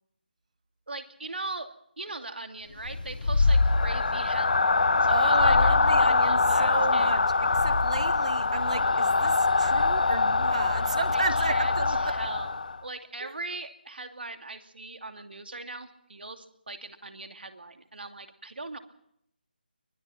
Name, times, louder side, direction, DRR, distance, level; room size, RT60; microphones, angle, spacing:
voice 1, 0.9-7.1 11.1-11.7 12.0-12.5 12.8-18.8, right 2 dB, 80° right, 6 dB, 2.6 m, -40 dB
sound 1, 2.8-12.8, left 3 dB, 60° left, 1.0 m, -23 dB
voice 2, 5.1-12.2 13.2-13.3, right 4 dB, 45° right, 13 dB, 1.4 m, -33 dB
24.5 x 19.5 x 5.9 m, 0.74 s
figure-of-eight pair, 175°, 5 cm